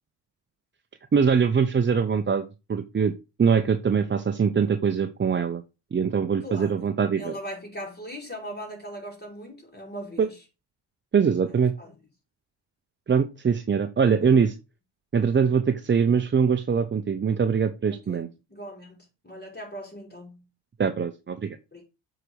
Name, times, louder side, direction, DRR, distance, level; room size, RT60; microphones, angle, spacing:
voice 1, 1.1-3.1 3.4-5.6 5.9-7.3 10.2-10.3 11.1-11.7 13.1-14.5 15.1-18.3 20.8-21.6, right 6 dB, 25° right, 0.7 m, -23 dB
voice 2, 6.4-6.9 7.2-10.3 11.4-11.5 11.8-11.9 17.9-20.4 21.7-21.8, equal, 20° left, 4.9 m, -39 dB
7.9 x 5.0 x 4.7 m
supercardioid pair, 60°, 46 cm